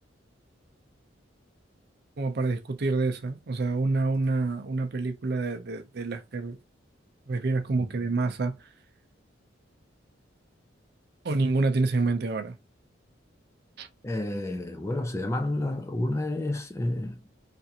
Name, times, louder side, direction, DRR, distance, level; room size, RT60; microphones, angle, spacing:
voice 1, 2.2-6.6 7.3-8.7 11.2-12.6 13.8-13.9, right 3 dB, 55° right, 0.5 m, -27 dB
voice 2, 14.0-17.3, left 1 dB, 15° left, 0.4 m, -30 dB
3.3 x 2.4 x 2.8 m
head